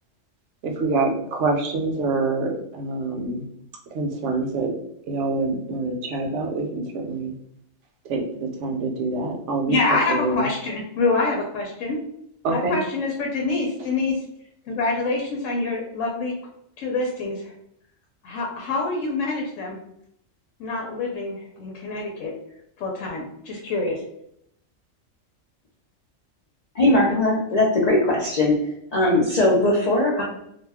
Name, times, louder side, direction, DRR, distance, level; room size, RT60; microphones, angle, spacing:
voice 1, 0.6-3.4 3.9-4.7 5.1-7.3 8.0-9.8 10.1-10.5 12.4-12.8, right 3 dB, 70° right, 2 dB, 0.9 m, -26 dB
voice 2, 9.7-12.0 12.5-14.2 14.7-16.3 16.8-17.5 18.2-19.8 20.6-22.3 22.8-24.0, left 3 dB, 80° left, 0 dB, 0.9 m, -26 dB
voice 3, 26.7-28.6 28.9-30.2, left 1 dB, 60° left, -4 dB, 0.4 m, -19 dB
2.4 x 2.1 x 3.3 m, 0.74 s
omnidirectional pair, 1.3 m